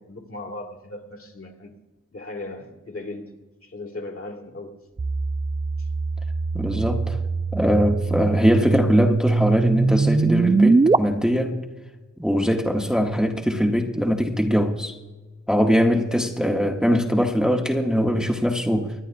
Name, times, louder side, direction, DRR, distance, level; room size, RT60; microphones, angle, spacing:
voice 1, 0.0-1.7 2.1-3.3 3.6-4.8 5.8-5.9, left 2 dB, 50° left, 3 dB, 1.8 m, -37 dB
sound 1, 5.0-11.0, right 3 dB, 20° right, 0.3 m, -22 dB
voice 2, 6.5-7.2 7.5-11.5 12.2-15.0 15.5-18.9, equal, ahead, 1 dB, 1.0 m, -21 dB
24.5 x 10.5 x 2.5 m, 1.2 s
wide cardioid pair, 115°, 29 cm